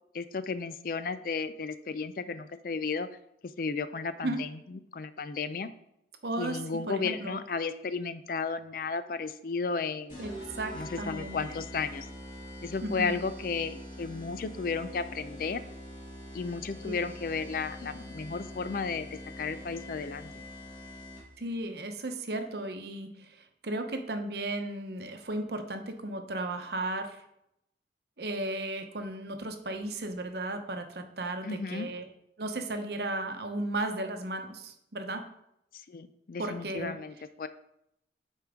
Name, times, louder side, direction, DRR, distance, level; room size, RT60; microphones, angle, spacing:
voice 1, 0.1-3.1 3.6-4.5 4.9-5.7 6.4-10.2 10.7-12.1 12.6-15.6 16.3-19.1 19.4-20.4 31.4-31.9 35.9-37.5, left 4 dB, 50° left, 12 dB, 0.4 m, -34 dB
voice 2, 6.2-7.4 10.2-10.3 10.6-11.6 12.8-13.2 16.8-16.9 21.4-27.2 28.2-32.1 32.4-35.3 36.4-36.9, right 2 dB, 65° right, 6 dB, 0.8 m, -35 dB
sound 1, 10.1-21.5, left 1 dB, 30° left, 2.5 m, -44 dB
8.5 x 4.5 x 3.6 m, 0.79 s
head